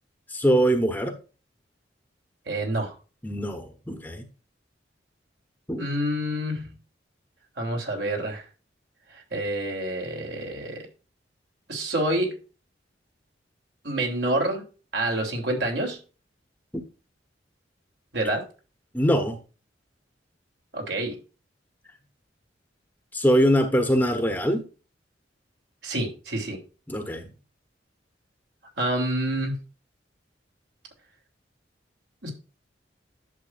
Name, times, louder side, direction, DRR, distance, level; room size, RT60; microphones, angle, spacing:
voice 1, 0.3-1.1 3.2-4.3 5.7-5.8 16.7-16.8 18.9-19.4 23.1-24.6 26.9-27.3, equal, 10° left, 5 dB, 1.1 m, -23 dB
voice 2, 2.5-2.9 5.8-6.7 7.6-8.4 9.3-10.8 11.7-12.3 13.8-14.6 14.9-16.0 18.1-18.4 20.7-21.2 25.8-26.6 28.8-29.5 32.2-32.3, right 1 dB, 65° right, 1 dB, 3.4 m, -27 dB
11.0 x 7.5 x 2.6 m, 0.34 s
head